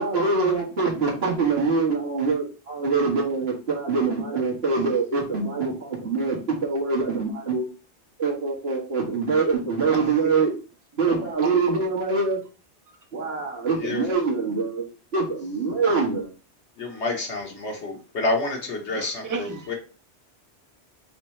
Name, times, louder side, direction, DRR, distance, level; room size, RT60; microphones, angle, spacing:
voice 1, 0.0-7.6 8.2-10.5 11.0-12.4 13.1-14.9 15.1-16.3, right 4 dB, 65° right, -3 dB, 1.7 m, -24 dB
voice 2, 16.8-19.7, left 2 dB, 90° left, 1 dB, 1.5 m, -28 dB
voice 3, 18.9-19.7, right 4 dB, 30° right, 5 dB, 0.4 m, -33 dB
5.9 x 2.8 x 3.2 m, 0.34 s
omnidirectional pair, 1.1 m